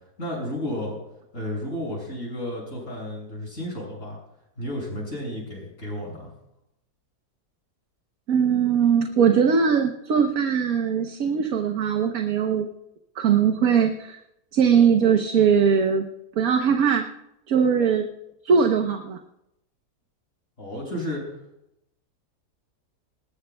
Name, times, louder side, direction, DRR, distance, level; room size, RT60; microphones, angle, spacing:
voice 1, 0.2-1.0 1.3-4.2 4.6-6.3 20.6-21.4, left 1 dB, 45° left, -2 dB, 7.0 m, -32 dB
voice 2, 8.3-12.7 13.2-14.2 14.5-16.0 16.4-17.1 17.5-18.1 18.4-19.2, right 7 dB, 65° right, 4 dB, 1.4 m, -20 dB
20.5 x 19.5 x 2.3 m, 0.83 s
omnidirectional pair, 1.7 m